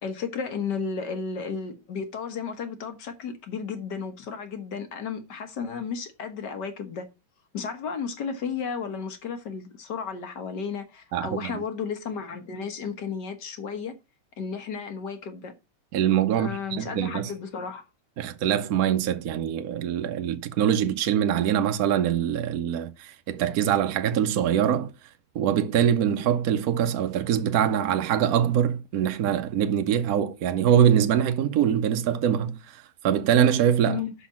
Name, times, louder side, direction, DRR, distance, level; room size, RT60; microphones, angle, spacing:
voice 1, 0.0-7.1 7.5-13.9 14.4-15.5 16.3-17.9 33.9-34.1, left 6 dB, 55° left, 1.8 m, -33 dB
voice 2, 11.1-11.6 15.9-17.3 18.2-24.9 25.3-34.0, right 9 dB, 65° right, 0.9 m, -23 dB
5.9 x 5.7 x 7.0 m
omnidirectional pair, 2.3 m